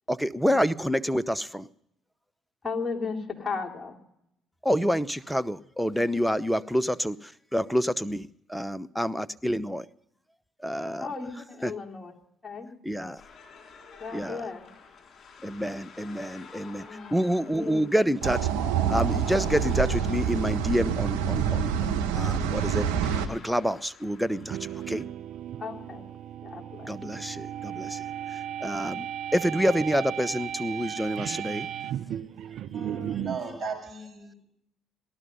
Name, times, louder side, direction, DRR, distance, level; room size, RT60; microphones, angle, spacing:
voice 1, 0.1-1.7 4.6-7.2 7.5-9.8 10.6-11.0 11.6-11.7 12.9-13.2 14.1-14.4 15.4-16.8 17.1-18.4 18.9-22.8 23.3-24.6 24.9-25.0 26.9-28.0 28.6-29.1 29.3-31.7, equal, ahead, 13 dB, 0.7 m, -27 dB
voice 2, 2.6-4.0 11.0-12.1 12.4-12.7 14.0-14.7 16.7-18.1 25.6-26.1 26.4-27.0, left 4 dB, 15° left, -1 dB, 3.4 m, -36 dB
sound 1, 13.2-25.0, left 5 dB, 45° left, 4.3 m, -51 dB
sound 2, 18.2-23.3, right 8 dB, 80° right, 1.1 m, -26 dB
sound 3, 24.3-33.5, right 10 dB, 60° right, 0.6 m, -35 dB
voice 3, 32.7-34.4, right 4 dB, 25° right, 0 dB, 7.0 m, -37 dB
18.5 x 12.5 x 5.4 m, 0.77 s
hypercardioid pair, 55°, 0 cm